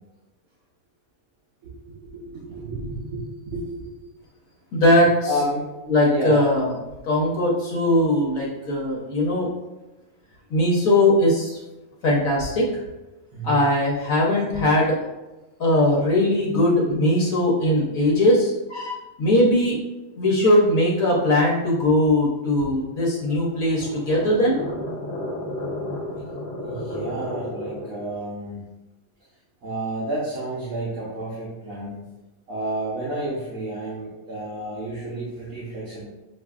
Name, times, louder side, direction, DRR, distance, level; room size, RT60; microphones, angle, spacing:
voice 1, 1.6-3.9 5.3-5.7 6.1-6.4 13.3-13.6 22.6-22.7 26.6-28.6 29.6-32.0 32.5-36.1, right 1 dB, 75° right, -7 dB, 1.4 m, -31 dB
voice 2, 4.7-5.3 5.9-6.7 7.0-9.5 10.5-11.6 12.0-12.8 13.4-15.0 15.6-19.8 20.2-24.6, left 1 dB, 75° left, -3 dB, 1.3 m, -20 dB
sound 1, 23.2-28.0, left 1 dB, 10° left, 1.2 m, -32 dB
6.9 x 2.6 x 2.4 m, 1.1 s
omnidirectional pair, 1.5 m